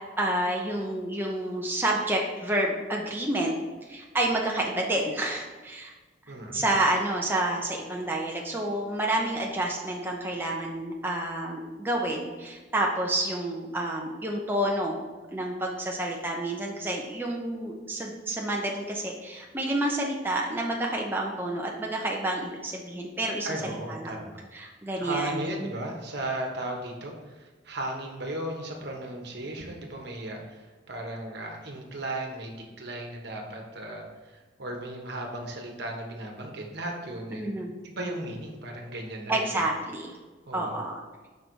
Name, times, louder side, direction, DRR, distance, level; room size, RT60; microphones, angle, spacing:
voice 1, 0.2-3.5 3.9-5.9 6.5-15.0 15.3-24.1 24.5-25.5 37.3-37.7 39.3-40.1 40.5-41.0, right 1 dB, 10° right, -1 dB, 0.6 m, -29 dB
voice 2, 6.3-6.7 23.4-24.4 25.0-37.6 37.8-39.6 40.5-40.7, right 1 dB, 60° right, 1 dB, 1.2 m, -36 dB
5.6 x 4.1 x 6.1 m, 1.3 s
head